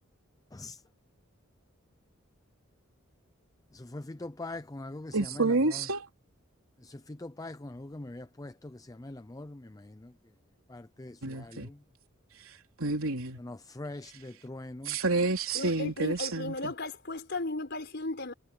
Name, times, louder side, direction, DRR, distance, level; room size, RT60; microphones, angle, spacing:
voice 1, 3.9-5.1 7.2-8.5 9.0-9.5 11.0-11.1 13.8-14.9, left 2 dB, 15° left, 0.5 m, -41 dB
voice 2, 5.1-6.1 11.2-11.7 12.8-13.4 14.8-16.7, right 3 dB, 85° right, 3.3 m, -29 dB
voice 3, 15.5-18.3, left 2 dB, 55° left, 4.9 m, -35 dB
head